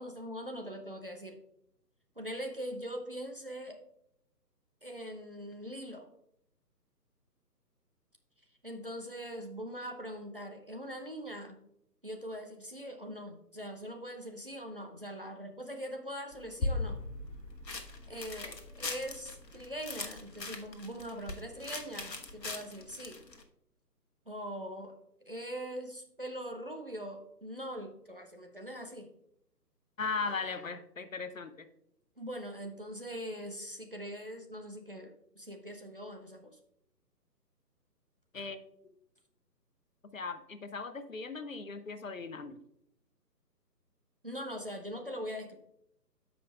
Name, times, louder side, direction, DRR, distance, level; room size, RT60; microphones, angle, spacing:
voice 1, 0.0-1.4 2.2-3.8 4.8-6.1 8.6-11.6 12.0-17.0 18.1-23.2 24.3-24.9 25.3-29.1 32.2-36.5 44.2-45.6, equal, 35° right, 4 dB, 0.5 m, -42 dB
sound 1, 16.3-23.4, left 2 dB, 80° left, 1.1 m, -39 dB
voice 2, 30.0-31.7 38.3-39.0 40.1-42.6, left 4 dB, 55° left, 10 dB, 0.6 m, -38 dB
13.0 x 5.1 x 2.3 m, 0.75 s
figure-of-eight pair, 145°, 50 cm